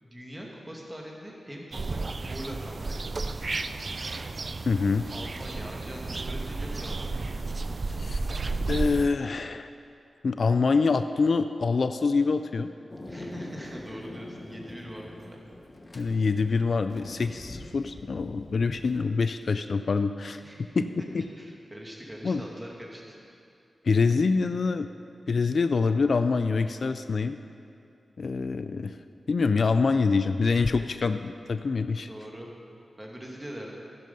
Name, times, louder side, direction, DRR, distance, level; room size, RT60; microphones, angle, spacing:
voice 1, 0.0-3.8 5.1-7.2 13.1-15.4 20.4-23.2 32.1-32.5 33.0-33.8, equal, 15° right, -1 dB, 2.1 m, -42 dB
sound 1, 1.7-9.1, right 3 dB, 45° right, 0.4 m, -32 dB
voice 2, 4.7-5.1 8.0-8.2 8.7-9.7 10.2-12.7 15.9-20.4 22.2-22.4 23.8-24.9 25.3-27.4 28.2-29.0 29.3-32.1, left 4 dB, 60° left, 10 dB, 0.4 m, -25 dB
Thunder, 12.9-19.0, left 1 dB, 30° left, 1.0 m, -44 dB
11.0 x 10.5 x 5.4 m, 2.5 s
wide cardioid pair, 90°, 0 cm